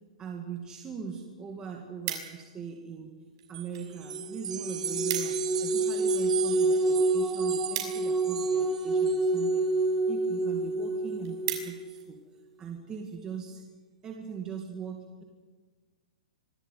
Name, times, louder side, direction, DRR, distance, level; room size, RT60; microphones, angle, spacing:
voice 1, 0.2-3.1 3.5-12.2 12.6-13.6 14.0-15.2, right 6 dB, 15° right, 1 dB, 2.1 m, -40 dB
sound 1, 0.9-1.0 1.3-2.7 3.4-3.9 4.2-4.3 4.6-4.7 4.9-5.5 5.9-8.7 9.4-9.8 10.3-10.4 10.7-10.8 11.1-12.1 12.6-12.8, right 10 dB, 40° right, 5.9 m, -38 dB
sound 2, 3.5-9.7, right 9 dB, 70° right, 1.7 m, -38 dB
sound 3, 4.0-11.9, right 2 dB, ahead, 1.8 m, -28 dB
25.5 x 17.0 x 9.3 m, 1.4 s
hypercardioid pair, 155°, 4 cm